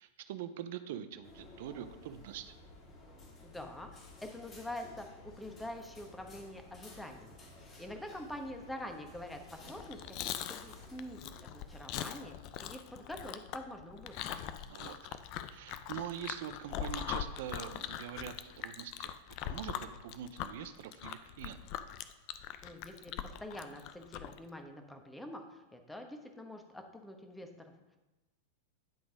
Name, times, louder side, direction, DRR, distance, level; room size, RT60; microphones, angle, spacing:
voice 1, 0.0-2.5 14.7-15.2 15.5-21.7, right 10 dB, 65° right, 10 dB, 0.6 m, -44 dB
sound 1, 1.1-17.0, left 2 dB, 80° left, 1.5 m, -66 dB
sound 2, 1.2-11.8, left 2 dB, 30° left, 2.3 m, -54 dB
voice 2, 3.4-5.1 5.4-14.4 22.6-23.1 23.4-28.0, left 1 dB, 5° left, 4 dB, 1.2 m, -46 dB
Chewing mastication, 9.6-24.4, left 10 dB, 50° left, 0.5 m, -41 dB
10.5 x 3.9 x 4.9 m, 1.1 s
hypercardioid pair, 110°, 0 cm